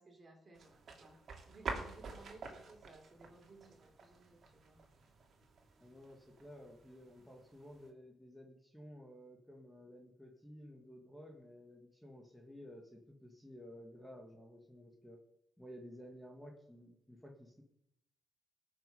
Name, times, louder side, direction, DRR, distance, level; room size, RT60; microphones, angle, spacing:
voice 1, 0.0-4.8 7.2-7.3, right 3 dB, 35° right, 2 dB, 3.5 m, -59 dB
sound 1, 0.5-7.9, right 4 dB, 55° right, 2.6 m, -49 dB
voice 2, 5.8-15.2 15.6-17.6, equal, 5° left, 1 dB, 1.9 m, -54 dB
18.0 x 6.6 x 5.4 m, 0.79 s
cardioid pair, 90°, 0 cm